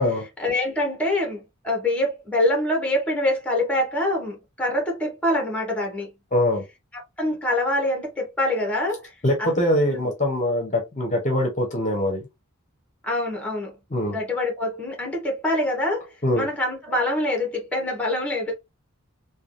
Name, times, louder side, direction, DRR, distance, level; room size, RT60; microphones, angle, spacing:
voice 1, 0.4-6.1 6.9-9.1 9.4-9.5 9.9-10.1 13.0-13.7 14.1-16.1 16.3-18.6, left 1 dB, 5° left, 1.0 m, -25 dB
voice 2, 6.3-6.6 9.2-12.3 13.9-14.2 16.2-16.5, left 1 dB, 35° left, 0.8 m, -23 dB
3.3 x 2.3 x 2.5 m
head